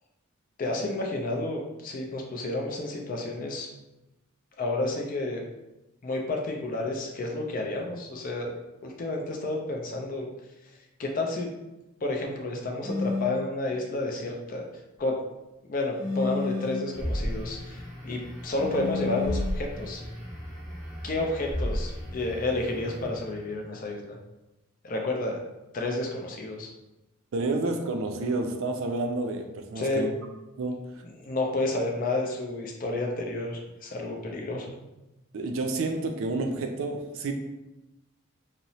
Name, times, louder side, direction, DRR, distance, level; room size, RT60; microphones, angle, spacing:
voice 1, 0.6-3.7 4.6-5.4 6.0-8.5 8.8-10.3 10.7-11.5 12.0-14.6 15.0-15.2 15.7-20.0 21.0-24.0 24.8-25.4 25.7-26.7 29.8-30.0 31.2-34.8, left 2 dB, 40° left, 1 dB, 0.4 m, -30 dB
sound 1, 12.8-13.4 15.9-16.9 18.5-19.6, left 4 dB, 40° right, 0.7 m, -31 dB
sound 2, 16.9-23.6, equal, 5° left, 0.7 m, -35 dB
voice 2, 27.3-30.1 30.6-31.0 35.3-37.3, right 2 dB, 65° right, 4 dB, 0.4 m, -30 dB
2.8 x 2.0 x 2.7 m, 0.97 s
head